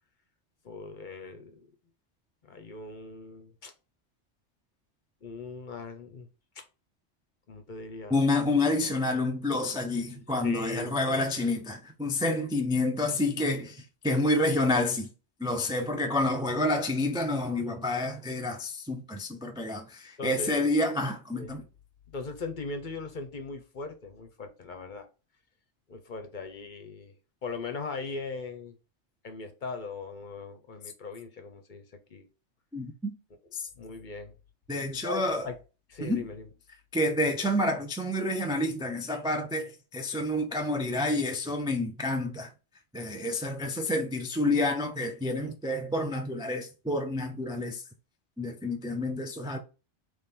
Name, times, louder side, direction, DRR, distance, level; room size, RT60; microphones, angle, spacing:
voice 1, 0.6-1.6 2.4-3.7 5.2-6.3 6.6-6.7 7.5-8.1 10.4-11.4 20.2-20.7 21.3-21.6 22.1-25.1 25.9-27.1 27.4-28.8 29.2-32.3 33.7-34.3 35.0-35.5 35.9-36.5, left 4 dB, 50° left, 0.8 m, -39 dB
voice 2, 8.1-15.1 15.4-21.6 32.7-33.1 33.5-33.7 34.7-35.5 36.0-36.3 36.9-42.5 42.9-47.8 48.4-49.6, left 2 dB, 5° right, 0.3 m, -29 dB
4.2 x 3.3 x 3.6 m
omnidirectional pair, 1.2 m